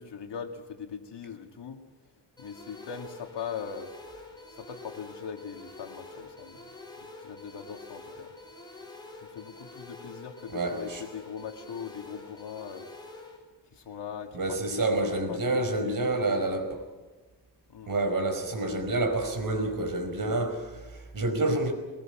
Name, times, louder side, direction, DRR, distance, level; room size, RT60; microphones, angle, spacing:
voice 1, 0.0-1.8 2.4-3.9 4.6-6.6 7.0-8.3 9.2-12.9 13.7-14.6 15.3-16.2 17.7-17.9, left 7 dB, 75° left, 4 dB, 2.3 m, -40 dB
sound 1, 2.4-13.4, left 2 dB, 10° left, 6.3 m, -47 dB
voice 2, 10.5-11.0 14.3-16.8 17.9-21.7, right 2 dB, 50° right, 6 dB, 5.0 m, -28 dB
22.0 x 21.5 x 7.4 m, 1.2 s
wide cardioid pair, 130°, 42 cm